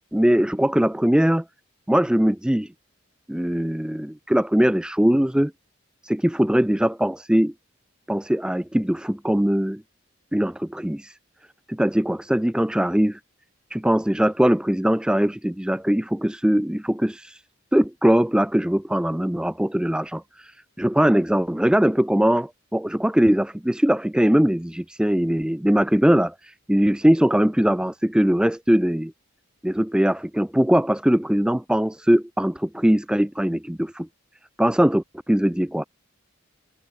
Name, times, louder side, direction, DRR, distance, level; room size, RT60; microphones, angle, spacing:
voice 1, 0.1-1.4 1.9-2.7 3.3-5.5 6.0-7.5 8.1-9.8 10.3-11.1 11.7-13.2 13.7-17.4 17.7-20.5 20.8-29.1 29.6-34.1 34.6-35.8, equal, 5° right, 0.4 m, -21 dB
head